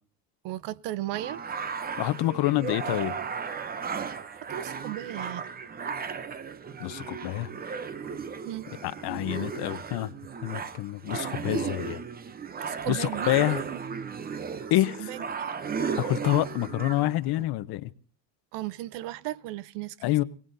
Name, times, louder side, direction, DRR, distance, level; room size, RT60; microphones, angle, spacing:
voice 1, 0.4-1.5 4.3-5.5 8.4-8.7 12.6-13.8 15.0-15.5 18.5-20.0, right 15 dB, 65° right, 0.7 m, -36 dB
sound 1, 1.1-17.4, right 6 dB, 20° right, 0.7 m, -35 dB
voice 2, 2.0-3.2 6.8-7.5 8.8-10.1 10.4-12.0 12.9-13.6 14.7-15.2 16.0-17.9 20.0-20.2, left 16 dB, 60° left, 0.9 m, -27 dB
27.5 x 18.0 x 2.7 m
cardioid pair, 125°, 44 cm